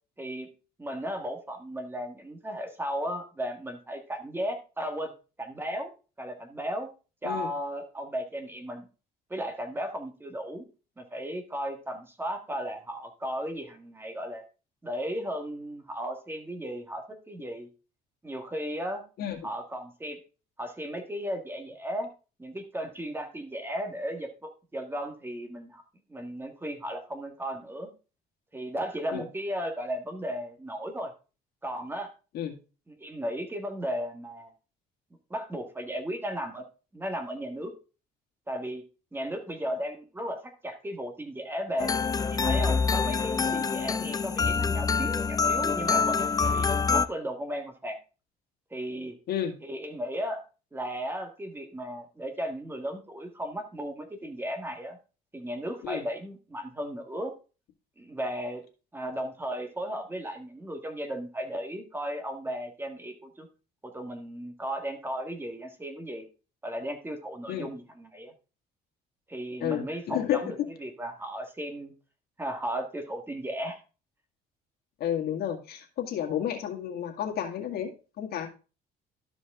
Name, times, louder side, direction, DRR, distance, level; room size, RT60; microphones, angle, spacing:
voice 1, 0.2-0.5 0.8-5.1 5.4-5.9 6.2-6.9 7.2-8.9 9.3-10.6 11.0-14.4 14.8-17.7 18.2-19.0 19.4-20.2 20.6-22.1 22.4-25.8 26.1-27.9 28.5-31.1 31.6-32.1 32.9-34.5 35.3-36.6 36.9-37.7 38.5-38.8 39.1-42.0 42.3-48.0 48.7-49.2 49.6-50.4 50.7-55.0 55.3-57.3 58.0-58.6 58.9-63.5 63.8-66.2 66.6-68.3 69.3-71.9 72.4-73.8, equal, 15° right, 5 dB, 1.6 m, -35 dB
sound 1, 41.8-47.1, left 5 dB, 20° left, 0.4 m, -26 dB
voice 2, 69.6-70.4 75.0-77.9 78.2-78.5, left 10 dB, 70° left, 3 dB, 2.0 m, -31 dB
12.5 x 5.1 x 3.6 m, 0.33 s
cardioid pair, 110°, 17 cm